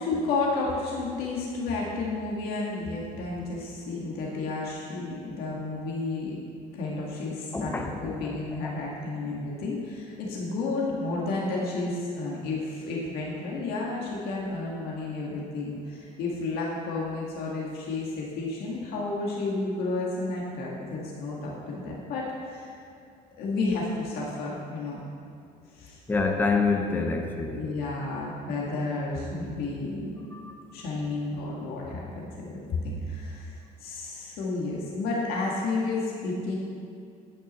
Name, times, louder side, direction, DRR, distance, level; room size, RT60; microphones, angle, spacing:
voice 1, 0.0-6.4 6.7-7.7 8.0-22.7 23.4-25.0 25.7-26.0 27.5-30.3 30.7-36.6, left 3 dB, 75° left, -4 dB, 1.9 m, -31 dB
voice 2, 7.5-8.1 8.6-8.7 26.1-27.7 30.3-30.5, left 4 dB, 10° left, 3 dB, 0.8 m, -27 dB
10.0 x 9.3 x 4.2 m, 2.4 s
cardioid pair, 150°, 16 cm